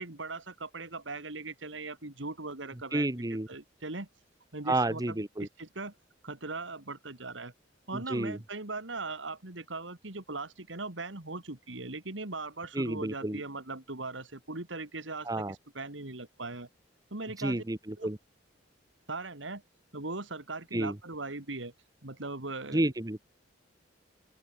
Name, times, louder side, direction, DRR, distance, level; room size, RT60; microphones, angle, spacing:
voice 1, 0.0-3.1 3.5-4.1 4.5-5.9 6.2-7.5 7.9-15.4 15.7-16.7 17.1-17.6 18.0-18.1 19.1-19.6 19.9-21.7 22.0-22.9, right 3 dB, 70° right, 2.8 m, -39 dB
voice 2, 2.9-3.5 4.7-5.5 7.9-8.4 12.7-13.4 15.2-15.5 17.4-18.2 20.7-21.0 22.7-23.2, right 1 dB, 20° right, 1.1 m, -30 dB
open air
head